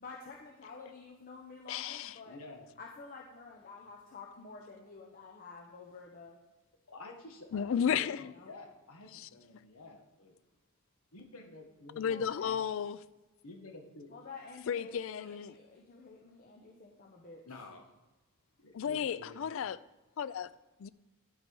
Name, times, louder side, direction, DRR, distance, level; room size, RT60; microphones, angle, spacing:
voice 1, 0.0-2.4 2.8-6.4 8.1-8.5 12.1-12.5 14.1-17.4, left 4 dB, 40° left, 0.8 m, -50 dB
voice 2, 1.7-2.1 7.5-8.3 9.1-9.3 12.0-13.0 14.7-15.5 18.7-19.8 20.2-20.5 20.8-20.9, left 7 dB, 60° left, 0.3 m, -33 dB
voice 3, 2.2-2.6 6.9-10.3 11.1-12.6 13.4-14.1 15.2-15.3 17.4-17.8 18.6-19.4, left 2 dB, 80° left, 1.4 m, -50 dB
11.0 x 4.6 x 4.6 m
head